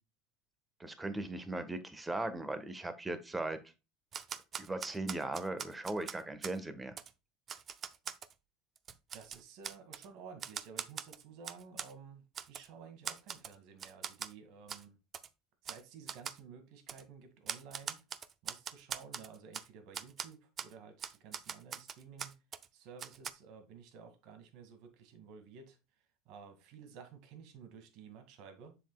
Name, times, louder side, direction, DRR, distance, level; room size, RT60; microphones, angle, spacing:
voice 1, 0.8-3.6 4.6-6.9, right 2 dB, 10° right, 1.3 m, -38 dB
Typewriter, 4.1-6.6 7.0-7.1 7.5-8.3 8.8-10.1 10.4-11.9 12.3-12.7 13.0-13.5 13.8-14.3 14.7-14.8 15.1-15.3 15.6-15.8 16.1-16.4 16.9-17.0 17.5-19.7 19.9-20.3 20.6-20.7 21.0-22.7 23.0-23.3, right 7 dB, 35° right, 0.6 m, -42 dB
voice 2, 9.1-15.0 15.6-18.0 18.4-22.4 22.7-25.8 26.3-28.8, right 6 dB, 60° right, 2.0 m, -53 dB
7.3 x 6.9 x 2.3 m
supercardioid pair, 110°, 0 cm